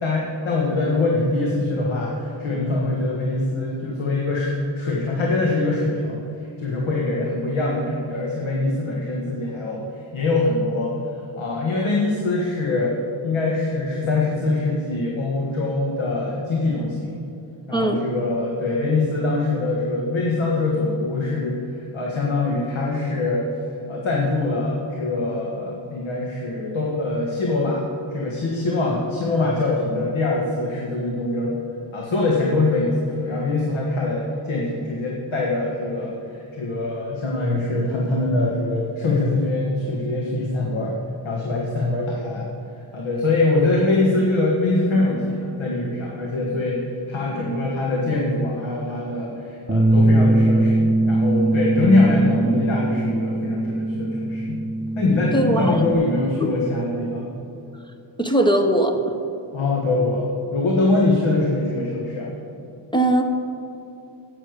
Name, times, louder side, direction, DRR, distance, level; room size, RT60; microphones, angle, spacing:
voice 1, 0.0-4.5 4.7-6.2 6.6-9.8 10.1-12.9 13.2-17.1 17.7-23.4 23.9-27.8 28.1-31.6 31.9-36.1 36.5-40.9 41.2-42.5 42.9-54.6 55.0-57.3 59.5-62.3, left 2 dB, 75° left, -3 dB, 1.7 m, -23 dB
voice 2, 17.7-18.0 55.3-55.8 56.4-56.5 58.2-59.0 62.9-63.2, right 1 dB, 10° left, 5 dB, 0.7 m, -20 dB
Bass guitar, 49.7-55.9, right 1 dB, 10° right, 1.2 m, -21 dB
10.5 x 8.7 x 6.6 m, 2.8 s
wide cardioid pair, 155°, 48 cm